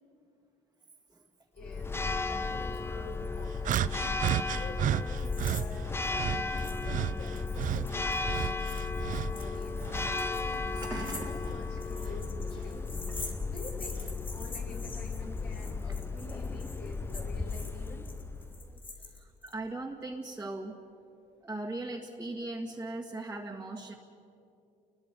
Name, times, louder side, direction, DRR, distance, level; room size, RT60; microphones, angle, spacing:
voice 1, 1.5-4.0 4.5-6.0 6.5-8.7 9.3-10.9 11.2-13.0 13.4-18.0, left 2 dB, 70° left, -2 dB, 6.6 m, -48 dB
Church bell, 1.6-18.8, left 4 dB, 15° left, 0.8 m, -35 dB
sound 1, 3.6-5.7 6.1-9.5 9.8-11.3 12.1-12.2 13.2-13.3, right 11 dB, 50° right, 0.5 m, -33 dB
sound 2, 5.3-5.6 5.9-6.0 6.6-6.9 7.2-19.5, left 3 dB, 30° left, 3.8 m, -46 dB
voice 2, 10.5-11.4 13.4-13.7 18.0-18.1 18.6-20.8 21.4-23.9, right 2 dB, 10° right, -2 dB, 1.8 m, -40 dB
30.0 x 21.5 x 5.3 m, 2.6 s
cardioid pair, 110°, 17 cm